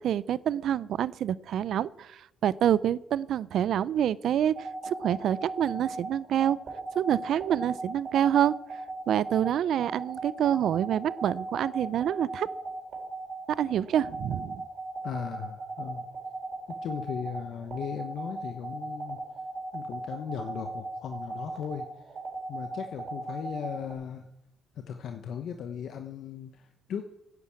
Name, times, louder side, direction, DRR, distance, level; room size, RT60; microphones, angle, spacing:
voice 1, 0.0-6.6 6.9-8.5 9.1-12.5 13.5-14.6, right 10 dB, 70° right, 20 dB, 0.5 m, -27 dB
sound 1, 4.6-23.9, right 3 dB, 50° right, 4.4 m, -37 dB
voice 2, 15.0-16.0 16.8-19.2 19.7-21.9 22.5-24.2 24.8-27.1, left 8 dB, 70° left, 6 dB, 1.1 m, -37 dB
10.5 x 9.8 x 8.5 m, 0.85 s
cardioid pair, 90°, 0 cm